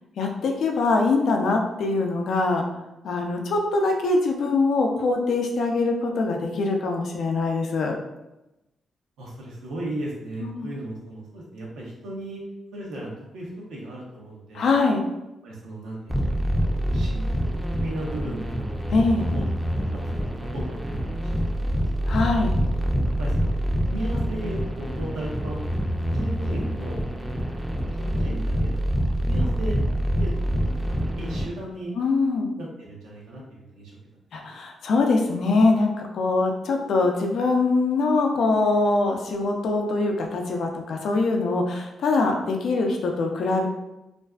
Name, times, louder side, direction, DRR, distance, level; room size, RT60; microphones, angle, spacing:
voice 1, 0.2-2.6 3.0-8.0 10.4-10.7 14.5-15.0 18.9-19.2 22.0-22.5 32.0-32.5 34.3-43.7, left 3 dB, 75° left, 2 dB, 0.4 m, -23 dB
voice 2, 9.2-12.4 12.7-14.7 15.4-16.5 16.8-17.5 17.8-19.4 19.9-22.3 23.2-25.6 26.1-27.0 27.9-28.8 29.3-29.8 30.1-31.9 32.6-34.0 34.4-34.5, right 1 dB, 90° right, -3 dB, 0.7 m, -36 dB
sound 1, 16.1-31.4, equal, 5° right, 0.4 m, -26 dB
2.5 x 2.3 x 2.2 m, 0.96 s
cardioid pair, 65°, 0 cm